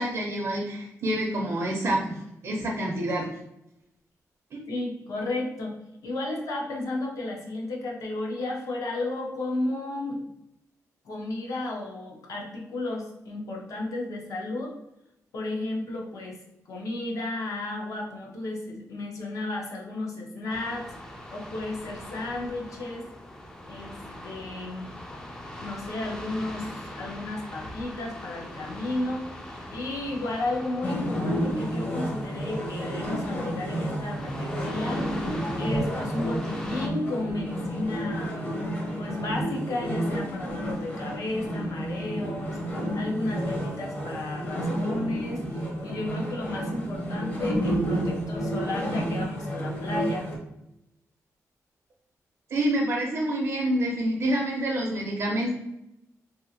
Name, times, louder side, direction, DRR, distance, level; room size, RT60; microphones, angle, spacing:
voice 1, 0.0-2.2 2.4-3.3 4.5-4.6 52.5-55.5, right 1 dB, 60° right, -2 dB, 0.5 m, -27 dB
voice 2, 4.7-5.7 6.0-10.2 11.0-14.7 15.3-16.4 16.7-23.1 23.7-24.0 24.2-24.9 25.6-35.1 35.4-38.6 39.0-50.3, left 2 dB, 70° left, -1 dB, 0.7 m, -33 dB
sound 1, 20.5-36.9, left 1 dB, 10° left, 0.3 m, -41 dB
sound 2, 30.8-50.4, equal, 30° left, 0.7 m, -30 dB
2.7 x 2.4 x 2.7 m, 0.86 s
wide cardioid pair, 155°, 6 cm